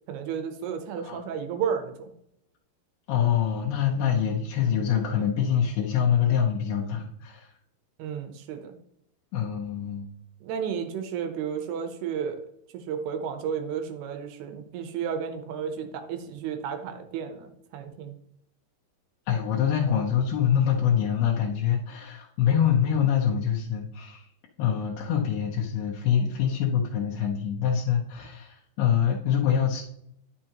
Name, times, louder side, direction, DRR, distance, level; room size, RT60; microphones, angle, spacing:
voice 1, 0.1-2.1 8.0-8.8 10.4-12.4 12.7-18.2, right 7 dB, 80° right, 6 dB, 2.7 m, -32 dB
voice 2, 3.1-7.5 9.3-10.1 19.3-24.3 24.6-29.8, left 8 dB, 80° left, -3 dB, 2.7 m, -25 dB
9.8 x 6.4 x 2.9 m, 0.74 s
omnidirectional pair, 4.8 m